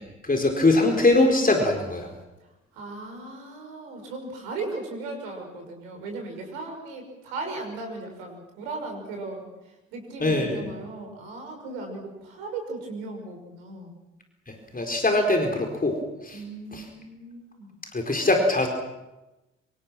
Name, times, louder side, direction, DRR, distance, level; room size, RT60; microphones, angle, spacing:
voice 1, 0.2-2.1 10.2-10.7 14.5-16.0 16.2-16.4 16.7-16.9 17.9-18.7, left 2 dB, 20° left, 3 dB, 4.5 m, -22 dB
voice 2, 2.7-9.5 9.9-14.0 16.3-17.8, right 3 dB, 70° right, 2 dB, 6.0 m, -37 dB
26.0 x 24.5 x 6.2 m, 1.0 s
figure-of-eight pair, 40°, 37 cm